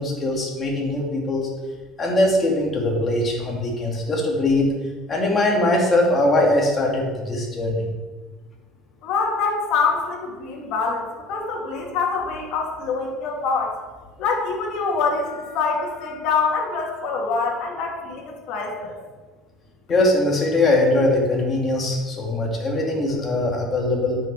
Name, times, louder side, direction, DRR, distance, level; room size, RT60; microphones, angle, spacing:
voice 1, 0.0-1.5 2.0-4.7 5.1-7.9 19.9-24.2, left 1 dB, 25° left, -1 dB, 2.6 m, -21 dB
voice 2, 9.0-13.7 14.2-19.0, left 4 dB, 65° left, -1 dB, 2.7 m, -25 dB
9.0 x 6.8 x 4.9 m, 1.3 s
supercardioid pair, 115°, 0 cm